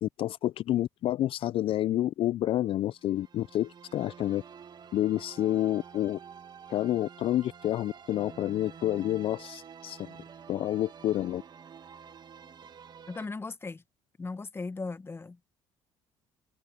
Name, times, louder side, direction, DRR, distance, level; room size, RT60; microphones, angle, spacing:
voice 1, 0.0-4.4 4.9-6.2 6.7-10.1 10.5-11.4, left 13 dB, 55° left, 0.4 m, -29 dB
sound 1, 2.8-13.3, right 7 dB, 40° right, 1.4 m, -49 dB
voice 2, 13.1-13.8 14.2-15.5, left 3 dB, 20° left, 1.1 m, -37 dB
open air
supercardioid pair, 90°, 11 cm